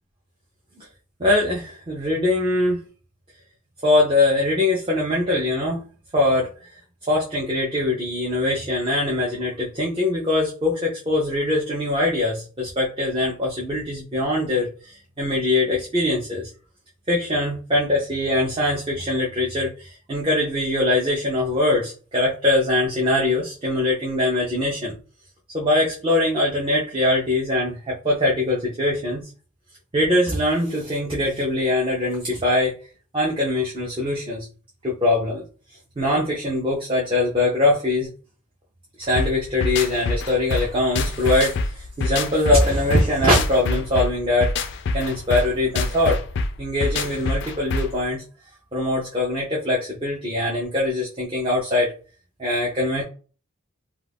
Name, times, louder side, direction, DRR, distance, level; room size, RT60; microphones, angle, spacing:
voice 1, 1.2-2.8 3.8-5.8 6.1-6.5 7.1-16.5 17.1-24.9 25.5-29.3 29.9-32.7 33.1-34.5 34.8-35.4 36.0-38.1 39.0-44.5 44.9-46.2 46.6-48.2 48.7-51.9 52.4-53.0, left 2 dB, 25° right, -4 dB, 0.4 m, -22 dB
sound 1, 39.2-48.0, left 3 dB, 50° left, 0.3 m, -26 dB
2.4 x 2.2 x 3.3 m, 0.38 s
head